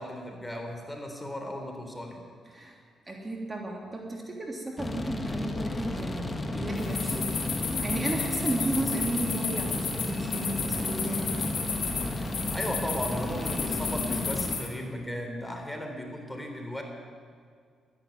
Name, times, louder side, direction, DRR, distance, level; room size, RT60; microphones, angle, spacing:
voice 1, 0.0-2.2 12.5-16.8, equal, 10° left, 3 dB, 3.6 m, -36 dB
voice 2, 3.1-11.3, right 2 dB, 30° right, 0 dB, 3.0 m, -34 dB
sound 1, 4.8-14.6, left 2 dB, 25° left, 1.8 m, -33 dB
sound 2, 6.7-14.7, left 5 dB, 65° left, 3.0 m, -33 dB
12.5 x 11.0 x 9.3 m, 2.1 s
supercardioid pair, 55°, 0 cm